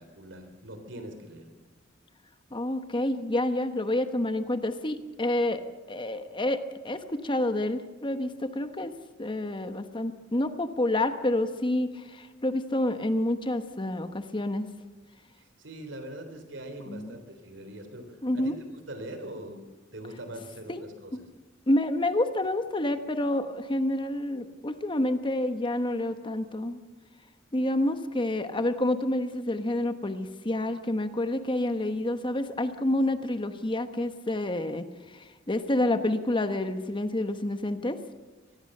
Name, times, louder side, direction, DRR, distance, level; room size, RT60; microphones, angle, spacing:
voice 1, 0.0-1.5 15.4-19.6 19.9-21.3, right 1 dB, 65° right, 8 dB, 3.8 m, -42 dB
voice 2, 2.5-5.6 5.9-8.9 9.2-14.7 16.9-17.1 18.2-18.5 20.7-20.8 21.7-26.8 27.5-38.0, left 1 dB, 25° left, 9 dB, 1.1 m, -28 dB
25.0 x 19.5 x 6.7 m, 1.2 s
head